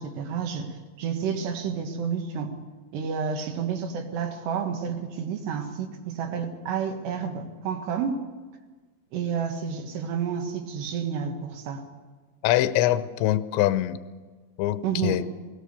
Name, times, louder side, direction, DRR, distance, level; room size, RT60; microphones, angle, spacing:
voice 1, 0.0-2.6 2.9-8.2 9.1-11.9 14.8-15.2, right 6 dB, 65° right, 4 dB, 3.3 m, -30 dB
voice 2, 12.4-14.0 14.6-15.2, left 14 dB, 80° left, 12 dB, 2.7 m, -23 dB
21.0 x 18.5 x 6.8 m, 1.4 s
omnidirectional pair, 5.9 m